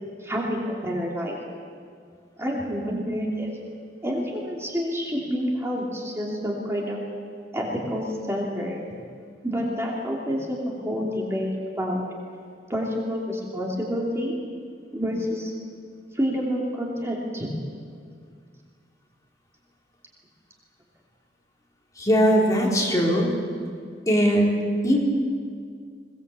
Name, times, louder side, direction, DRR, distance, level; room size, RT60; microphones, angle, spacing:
voice 1, 0.2-1.4 2.4-3.5 4.0-7.0 7.5-8.8 9.4-12.0 12.7-14.4 14.9-15.5 16.1-17.5, equal, 15° right, -3 dB, 3.0 m, -28 dB
voice 2, 22.0-23.3 24.1-25.0, equal, 20° left, -3 dB, 3.8 m, -20 dB
22.0 x 18.0 x 8.3 m, 2.1 s
head